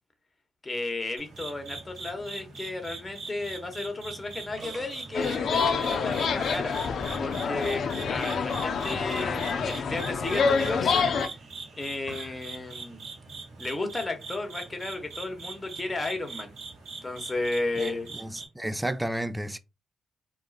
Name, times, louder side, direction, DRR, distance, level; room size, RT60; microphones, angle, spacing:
voice 1, 0.6-6.7 7.2-11.4 11.8-13.1 13.6-16.5 17.0-18.1, left 2 dB, 25° left, 1.2 m, -34 dB
sound 1, 1.2-18.5, right 4 dB, 75° right, 1.2 m, -42 dB
sound 2, 4.6-13.3, right 5 dB, 60° right, 0.9 m, -47 dB
sound 3, 5.1-11.3, left 5 dB, 65° left, 0.4 m, -27 dB
voice 2, 17.8-19.6, right 1 dB, 10° right, 0.5 m, -32 dB
4.6 x 2.3 x 2.4 m
hypercardioid pair, 45°, 0 cm